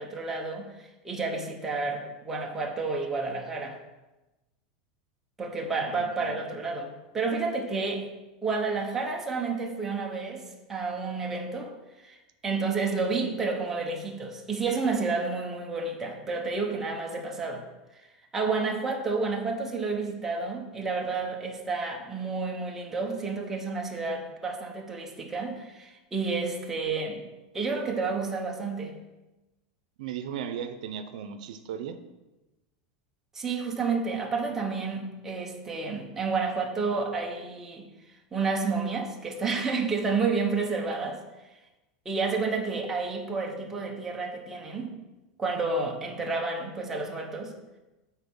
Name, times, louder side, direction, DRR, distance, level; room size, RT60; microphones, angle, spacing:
voice 1, 0.0-3.8 5.4-8.1 8.4-10.4 10.7-11.7 12.0-12.2 12.4-17.6 18.3-28.9 33.3-37.9 38.3-41.2 42.0-45.0 45.4-47.5, right 4 dB, 10° right, 0 dB, 0.8 m, -30 dB
voice 2, 5.9-6.3 30.0-32.0, right 8 dB, 80° right, 9 dB, 0.6 m, -36 dB
8.2 x 4.2 x 5.3 m, 1.1 s
supercardioid pair, 170°, 4 cm